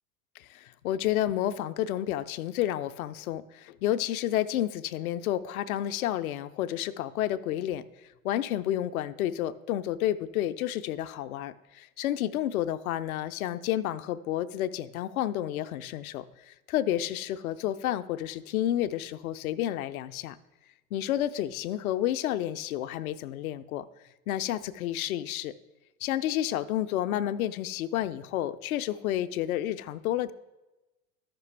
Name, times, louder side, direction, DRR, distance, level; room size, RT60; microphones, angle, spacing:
voice 1, 0.4-7.9 8.2-20.4 20.9-23.8 24.3-25.5 26.0-30.3, left 12 dB, 75° left, 13 dB, 0.6 m, -30 dB
12.5 x 5.9 x 3.3 m, 1.1 s
hypercardioid pair, 80°, 44 cm